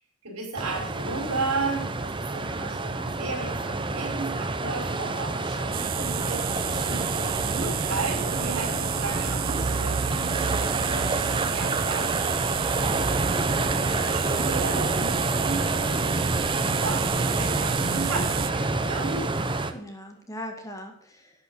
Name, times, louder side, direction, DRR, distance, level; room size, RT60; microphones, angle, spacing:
voice 1, 0.2-16.2 16.7-19.3, right 3 dB, 85° right, 1 dB, 5.6 m, -35 dB
sound 1, 0.5-19.7, right 2 dB, 20° right, 0.8 m, -28 dB
sound 2, 5.7-18.5, right 9 dB, 40° right, 0.4 m, -31 dB
voice 2, 17.4-17.8 19.7-21.3, left 1 dB, 15° left, 3 dB, 1.7 m, -40 dB
11.0 x 9.0 x 6.3 m, 0.67 s
head